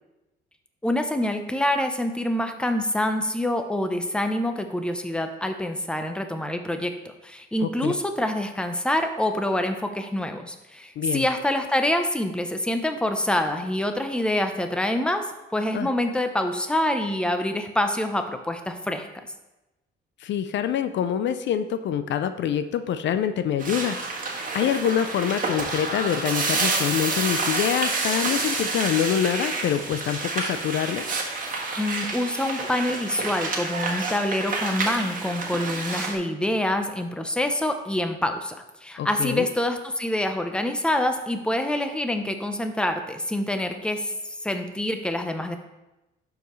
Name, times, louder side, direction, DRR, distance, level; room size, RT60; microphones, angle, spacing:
voice 1, 0.8-6.9 7.2-15.2 15.5-19.1 31.8-44.1 44.4-45.6, left 1 dB, 5° left, 6 dB, 0.8 m, -26 dB
voice 2, 7.6-7.9 11.0-11.3 15.7-15.9 20.2-31.0 39.0-39.5, left 9 dB, 65° left, 10 dB, 0.5 m, -26 dB
sound 1, 23.6-36.1, right 3 dB, 45° right, 1.4 m, -28 dB
12.0 x 4.7 x 3.1 m, 0.98 s
cardioid pair, 90°, 20 cm